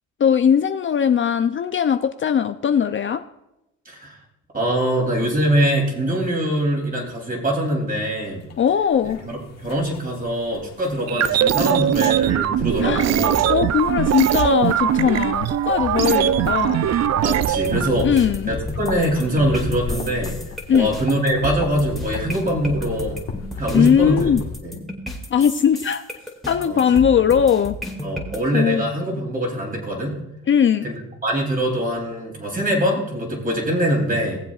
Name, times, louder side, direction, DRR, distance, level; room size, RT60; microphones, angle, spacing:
voice 1, 0.2-3.2 8.6-9.2 12.8-13.1 13.5-16.9 18.0-18.5 20.7-20.9 23.7-24.4 25.3-26.0 26.5-27.8 28.5-28.8 30.5-30.9, left 8 dB, 40° left, 9 dB, 0.5 m, -19 dB
voice 2, 3.8-4.2 4.5-8.5 9.0-13.5 17.2-18.1 18.5-20.4 20.7-23.2 23.6-24.3 24.6-24.8 26.6-26.8 28.0-30.2 30.8-34.4, right 1 dB, 30° right, 0 dB, 3.3 m, -23 dB
sound 1, 8.4-24.6, left 5 dB, 60° left, 1.6 m, -35 dB
sound 2, 11.1-17.9, right 10 dB, 60° right, 0.5 m, -20 dB
sound 3, 17.5-28.4, equal, ahead, 2.2 m, -33 dB
19.0 x 7.6 x 2.4 m, 0.90 s
cardioid pair, 90°, 30 cm